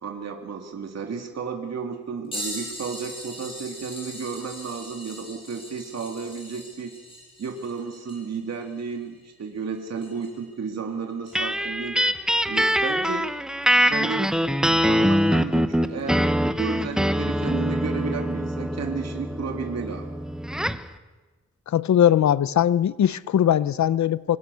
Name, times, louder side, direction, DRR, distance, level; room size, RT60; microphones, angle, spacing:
voice 1, 0.0-6.9 7.4-12.0 12.4-13.3 13.8-14.4 14.8-20.1, right 5 dB, 60° right, 3 dB, 2.6 m, -33 dB
sound 1, 2.3-10.5 11.2-11.4 13.6-13.7 14.8-14.9 16.0-16.1, left 1 dB, 20° left, 7.9 m, -40 dB
sound 2, 11.4-20.9, equal, ahead, 0.9 m, -23 dB
voice 2, 21.7-24.4, left 10 dB, 70° left, 18 dB, 0.7 m, -20 dB
25.5 x 23.0 x 6.9 m, 1.2 s
wide cardioid pair, 150°, 29 cm